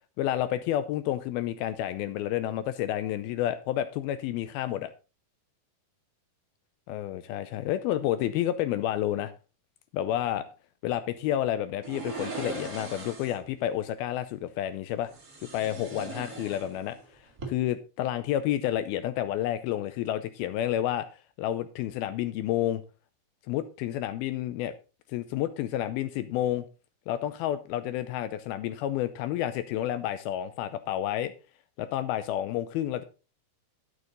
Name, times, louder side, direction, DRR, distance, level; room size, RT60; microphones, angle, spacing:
voice 1, 0.2-4.9 6.9-9.3 9.9-10.5 10.8-15.1 15.4-17.0 17.5-21.1 21.4-22.8 23.5-24.7 25.1-26.7 27.1-31.3 31.8-33.0, left 12 dB, 80° left, 2.3 m, -30 dB
sound 1, 11.8-13.5 15.1-17.0 17.3-17.5, right 3 dB, 30° right, 1.9 m, -39 dB
12.0 x 6.3 x 3.9 m
omnidirectional pair, 4.7 m